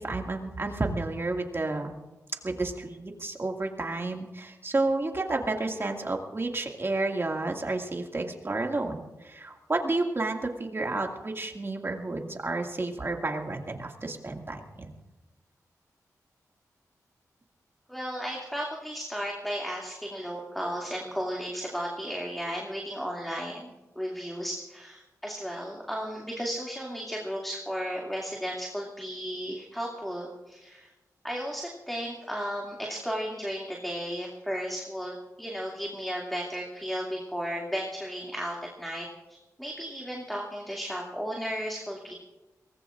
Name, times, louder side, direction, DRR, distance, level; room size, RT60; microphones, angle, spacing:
voice 1, 0.0-1.9 2.4-14.9, right 2 dB, 40° right, 2 dB, 2.2 m, -31 dB
voice 2, 17.9-30.9 31.2-42.1, equal, ahead, -2 dB, 2.5 m, -34 dB
23.0 x 19.0 x 2.5 m, 1.1 s
cardioid pair, 55°, 6 cm